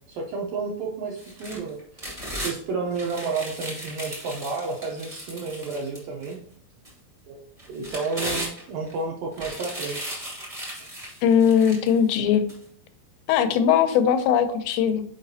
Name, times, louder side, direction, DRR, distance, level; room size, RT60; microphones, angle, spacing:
voice 1, 0.1-6.4 7.3-10.2, right 4 dB, 80° right, -1 dB, 2.0 m, -31 dB
sound 1, 1.2-2.5 2.9-6.3 6.8-6.9 7.6-8.9 9.3-12.0 12.5-12.6, equal, 50° right, 0.4 m, -36 dB
voice 2, 11.2-12.4 13.3-15.0, left 8 dB, 90° left, 9 dB, 2.8 m, -20 dB
7.0 x 4.9 x 2.7 m, 0.66 s
omnidirectional pair, 4.9 m